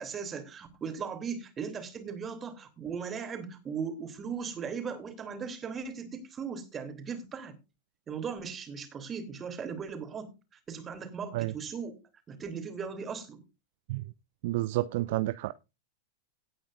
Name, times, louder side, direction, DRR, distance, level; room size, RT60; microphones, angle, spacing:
voice 1, 0.0-7.5 8.1-10.3 10.7-12.0 12.3-13.4, right 6 dB, 20° right, 3.0 m, -38 dB
voice 2, 14.4-15.5, right 17 dB, 50° right, 0.5 m, -30 dB
17.5 x 8.7 x 2.5 m
figure-of-eight pair, 90°, 0 cm